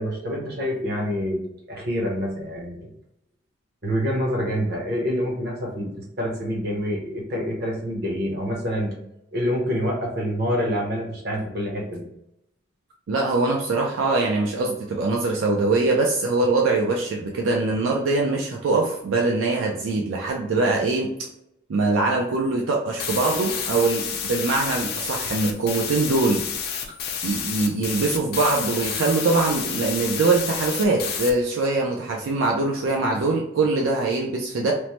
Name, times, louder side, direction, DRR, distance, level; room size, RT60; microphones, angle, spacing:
voice 1, 0.0-1.4 1.7-2.9 3.8-9.0 9.3-12.1, equal, 50° right, -1 dB, 0.8 m, -26 dB
voice 2, 13.1-21.1 21.7-26.4 27.2-34.7, right 3 dB, 80° right, 0 dB, 0.4 m, -23 dB
sound 1, 23.0-31.3, left 7 dB, 50° left, 0.5 m, -30 dB
3.0 x 2.1 x 2.9 m, 0.81 s
head